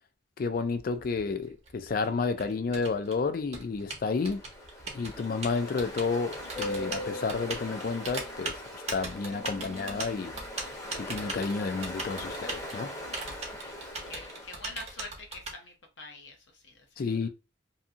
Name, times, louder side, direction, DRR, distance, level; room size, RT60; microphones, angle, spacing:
voice 1, 0.4-4.4 4.9-8.6 8.9-10.3 11.0-12.9 17.0-17.3, left 4 dB, 45° left, 0.3 m, -31 dB
Typing, 0.7-15.5, right 3 dB, 35° right, 0.7 m, -39 dB
Ocean, 4.0-15.1, left 1 dB, 15° left, 0.7 m, -40 dB
voice 2, 13.2-16.9, left 3 dB, 70° left, 0.8 m, -46 dB
2.7 x 2.6 x 2.4 m
head